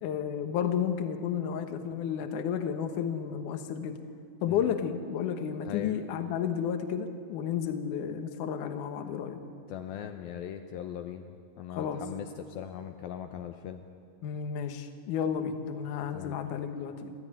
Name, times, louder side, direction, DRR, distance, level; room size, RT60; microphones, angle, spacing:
voice 1, 0.0-4.0 4.4-9.4 11.7-12.0 14.2-17.1, left 8 dB, 65° left, 7 dB, 2.1 m, -32 dB
voice 2, 4.5-4.8 5.6-6.0 9.7-13.8 16.1-16.5, left 10 dB, 85° left, 6 dB, 2.1 m, -40 dB
29.0 x 13.0 x 9.9 m, 2.4 s
omnidirectional pair, 5.2 m